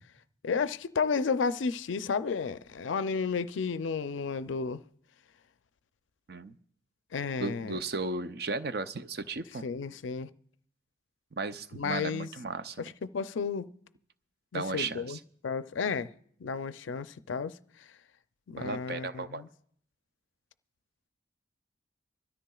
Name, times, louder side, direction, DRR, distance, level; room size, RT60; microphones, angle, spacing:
voice 1, 0.4-4.8 7.1-7.8 9.6-10.3 11.7-12.3 12.8-13.7 14.5-15.2 15.4-16.1 16.4-17.5 18.5-19.5, left 5 dB, 80° left, 0.5 m, -32 dB
voice 2, 7.4-9.6 11.4-12.9 14.5-15.2 18.6-19.4, right 3 dB, 55° right, 0.5 m, -35 dB
24.5 x 13.0 x 2.3 m
head